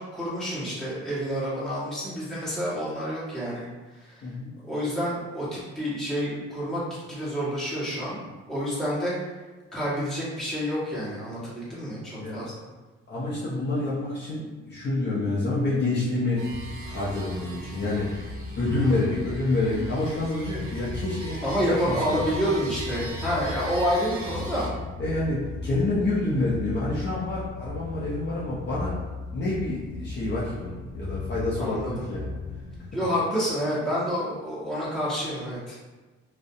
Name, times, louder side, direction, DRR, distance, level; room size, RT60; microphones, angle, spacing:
voice 1, 0.1-3.7 4.0-4.2 4.7-6.8 7.1-8.2 8.5-9.1 9.7-12.7 18.7-19.0 21.4-24.7 31.6-32.1 32.9-35.8, equal, ahead, -10 dB, 1.1 m, -28 dB
voice 2, 13.1-16.4 16.8-18.2 18.6-22.2 25.0-29.0 29.3-32.3, left 2 dB, 35° left, -8 dB, 0.6 m, -28 dB
sound 1, 16.4-24.7, right 3 dB, 45° right, 0.7 m, -41 dB
sound 2, 16.5-32.8, left 3 dB, 85° left, 0.6 m, -37 dB
2.4 x 2.1 x 2.6 m, 1.3 s
cardioid pair, 90°, 30 cm